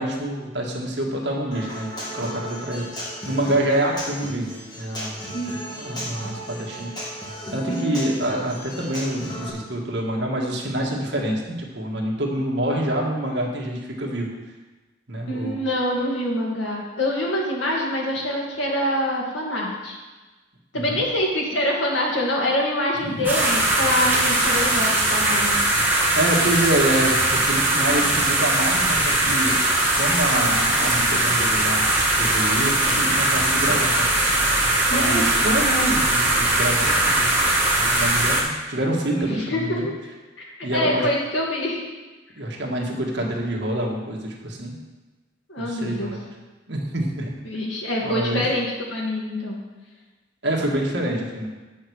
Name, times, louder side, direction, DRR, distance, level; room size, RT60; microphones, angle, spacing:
voice 1, 0.0-2.8 3.2-5.2 5.8-6.9 7.5-14.3 15.1-15.5 20.7-21.0 23.0-23.2 26.1-29.6 30.0-31.9 32.2-34.1 34.9-37.3 37.7-39.9 40.6-41.1 42.4-44.8 45.6-46.2 46.7-47.3 48.0-48.4 50.4-51.5, right 1 dB, 70° right, -1 dB, 1.8 m, -26 dB
Human voice / Acoustic guitar, 1.5-9.5, equal, 20° left, 2.1 m, -35 dB
voice 2, 7.7-8.1 15.3-20.0 20.7-25.6 34.9-35.3 39.1-39.8 40.4-41.8 45.5-46.2 47.4-49.6, left 1 dB, 90° left, -3 dB, 2.4 m, -25 dB
sound 1, 23.2-38.4, right 2 dB, 10° right, 1.7 m, -20 dB
8.2 x 6.4 x 6.3 m, 1.2 s
head